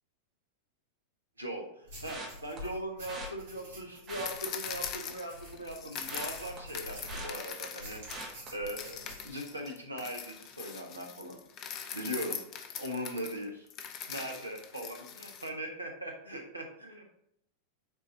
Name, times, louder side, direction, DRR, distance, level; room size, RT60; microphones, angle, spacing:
voice 1, 1.4-8.0 8.5-11.4 11.9-12.4 12.8-13.7 14.1-17.0, right 1 dB, 80° right, 2 dB, 1.2 m, -40 dB
sound 1, 1.9-7.4 7.8-9.3, left 1 dB, 60° right, 2.3 m, -48 dB
sound 2, 2.1-2.6 3.1-3.3 4.0-5.2 5.5-7.7 8.1-8.5 9.0-9.2 9.5-9.6, right 3 dB, 30° right, 1.5 m, -44 dB
sound 3, 4.2-8.4 8.7-15.5, left 8 dB, 35° left, 0.6 m, -42 dB
6.1 x 4.1 x 4.1 m, 0.75 s
figure-of-eight pair, 90°, 0 cm